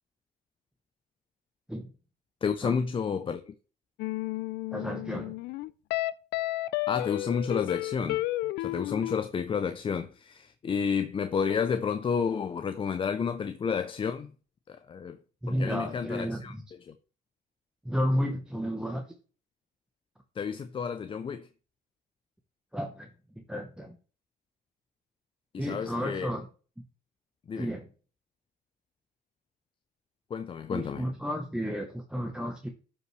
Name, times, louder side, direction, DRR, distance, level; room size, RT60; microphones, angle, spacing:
voice 1, 2.4-3.5 6.9-8.2 8.6-14.3 14.7-15.2 15.6-16.5 16.9-17.0 20.4-21.5 25.5-26.3 27.5-27.7 30.3-31.1, left 6 dB, 30° left, 0.6 m, -30 dB
sound 1, 4.0-9.2, left 17 dB, 85° left, 0.4 m, -32 dB
voice 2, 4.7-5.4 15.4-16.6 17.8-19.1 22.7-24.0 25.6-26.5 27.5-27.9 30.7-32.7, equal, 5° right, 0.9 m, -32 dB
12.5 x 5.4 x 3.2 m
cardioid pair, 110°, 17 cm